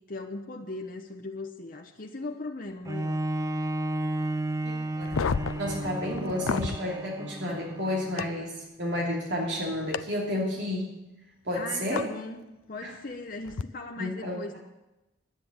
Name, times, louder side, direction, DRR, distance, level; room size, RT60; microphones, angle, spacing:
voice 1, 0.0-3.2 11.5-12.4 12.7-14.6, left 2 dB, 45° left, 2 dB, 0.9 m, -38 dB
Bowed string instrument, 2.9-8.5 9.1-9.2, right 1 dB, 15° right, 0.5 m, -33 dB
voice 2, 4.6-5.2 5.6-10.9 11.4-12.1 12.8-12.9 14.0-14.4, left 1 dB, 60° right, -2 dB, 2.9 m, -31 dB
sound 1, 5.0-6.8 8.2-8.3 9.9-10.0 12.0-12.1 13.4-13.6, left 5 dB, 90° left, 0.5 m, -30 dB
10.5 x 9.7 x 8.7 m, 0.99 s
head